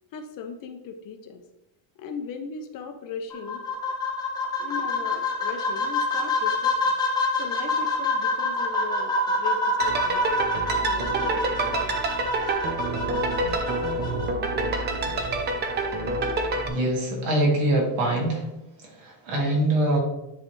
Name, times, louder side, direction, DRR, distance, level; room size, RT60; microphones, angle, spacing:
voice 1, 0.1-1.4 2.0-3.6 4.6-6.9 7.4-10.4 10.8-12.0, left 5 dB, 45° left, 6 dB, 0.6 m, -38 dB
sound 1, 3.3-14.3, left 2 dB, 10° left, 0.9 m, -26 dB
sound 2, 9.8-16.7, right 2 dB, 25° right, 0.3 m, -27 dB
voice 2, 16.7-18.4 18.8-20.0, right 1 dB, 75° right, -1 dB, 2.1 m, -24 dB
9.7 x 3.3 x 3.1 m, 0.89 s
cardioid pair, 175°, 48 cm